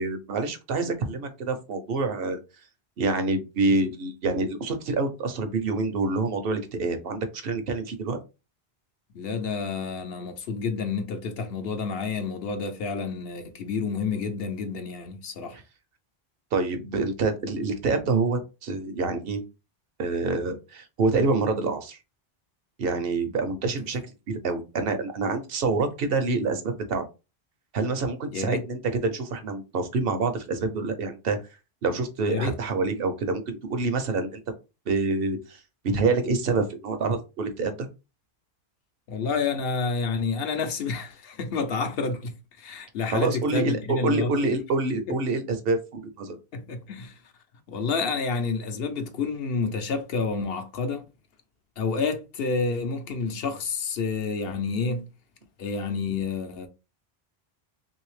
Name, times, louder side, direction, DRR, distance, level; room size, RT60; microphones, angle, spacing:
voice 1, 0.0-2.4 3.0-8.2 16.5-19.4 20.0-22.0 22.8-24.0 24.3-27.0 27.7-31.4 31.8-34.4 34.9-35.6 35.9-37.9 43.1-46.4, right 3 dB, 70° right, 0.8 m, -27 dB
voice 2, 9.1-15.6 28.3-28.6 32.2-32.6 39.1-42.3 42.6-44.3 45.1-45.2 46.5-47.2 47.7-51.0 51.8-55.1 55.6-56.7, left 4 dB, 70° left, 0.8 m, -29 dB
3.2 x 2.7 x 3.1 m
omnidirectional pair, 1.0 m